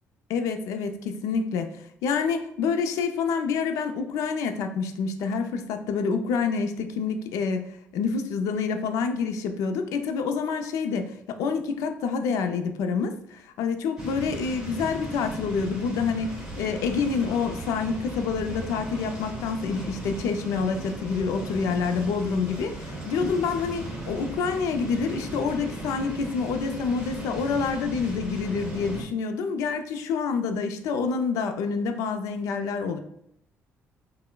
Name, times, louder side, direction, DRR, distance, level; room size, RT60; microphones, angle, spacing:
voice 1, 0.3-33.0, left 5 dB, 85° left, 7 dB, 0.4 m, -27 dB
sound 1, 14.0-29.0, right 1 dB, 15° right, 1.0 m, -37 dB
4.3 x 2.1 x 2.2 m, 0.75 s
cardioid pair, 115°, 5 cm